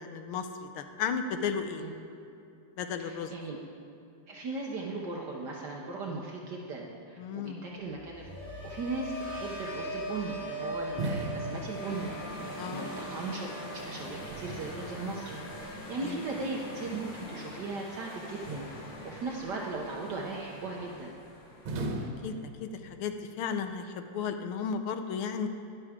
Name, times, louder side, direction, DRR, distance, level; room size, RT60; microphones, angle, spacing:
voice 1, 0.0-1.8 2.8-3.3 7.2-7.6 12.6-12.9 16.0-16.2 22.2-22.3 22.6-25.5, left 6 dB, 85° left, 7 dB, 1.6 m, -34 dB
voice 2, 3.0-3.6 4.3-8.3 8.6-13.5 13.8-18.7 19.0-21.1, right 3 dB, 60° right, -2 dB, 1.4 m, -38 dB
sound 1, 7.8-17.9 18.3-18.7, right 1 dB, 40° left, 3.0 m, -41 dB
sound 2, 10.4-21.7, left 2 dB, 60° left, 2.2 m, -45 dB
sound 3, 11.0-12.4 13.7-15.8 18.5-19.3 21.6-23.1, right 1 dB, 85° right, 2.1 m, -39 dB
12.5 x 11.0 x 3.6 m, 2.6 s
omnidirectional pair, 2.4 m